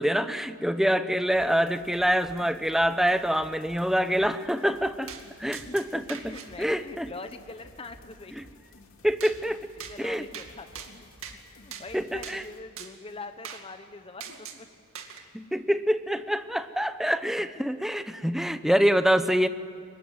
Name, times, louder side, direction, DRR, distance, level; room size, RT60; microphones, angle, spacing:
voice 1, 0.0-5.1 5.4-7.1 8.3-8.4 9.0-9.7 10.0-10.2 11.9-12.4 15.3-19.5, equal, ahead, 11 dB, 0.8 m, -26 dB
sound 1, 1.3-12.6, left 2 dB, 65° left, 2.9 m, -54 dB
sound 2, 5.1-5.2 5.5-6.5 9.2-9.4 9.8-10.0 10.3-10.5 10.7-11.4 11.7-11.9 12.2-12.4 12.8-12.9 13.4-13.6 14.2-14.6 14.9-15.2, right 8 dB, 65° right, 2.4 m, -41 dB
voice 2, 6.3-8.3 9.8-11.1 11.5-14.7, left 3 dB, 25° left, 8 dB, 1.0 m, -43 dB
23.5 x 21.0 x 9.5 m, 2.5 s
head